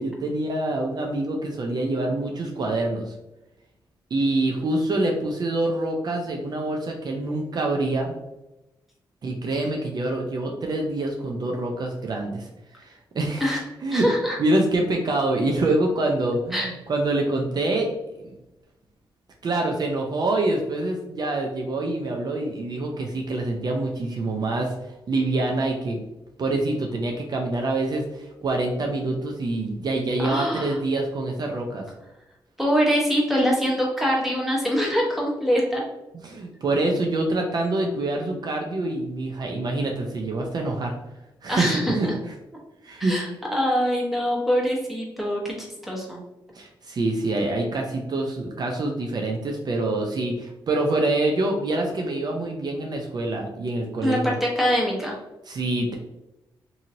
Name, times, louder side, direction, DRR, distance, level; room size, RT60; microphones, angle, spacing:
voice 1, 0.0-3.1 4.1-8.1 9.2-12.5 12.8-13.5 13.8-14.1 14.4-17.9 18.2-18.3 19.4-26.0 26.4-31.8 36.2-40.9 41.4-42.1 42.8-43.1 46.5-54.4 55.5-55.9, right 2 dB, 50° right, 1 dB, 0.5 m, -26 dB
voice 2, 13.9-14.4 16.5-16.7 30.2-30.7 32.6-35.8 41.5-42.1 43.0-46.2 54.0-55.1, equal, ahead, -3 dB, 1.1 m, -24 dB
2.8 x 2.7 x 2.6 m, 0.95 s
cardioid pair, 70°, 9 cm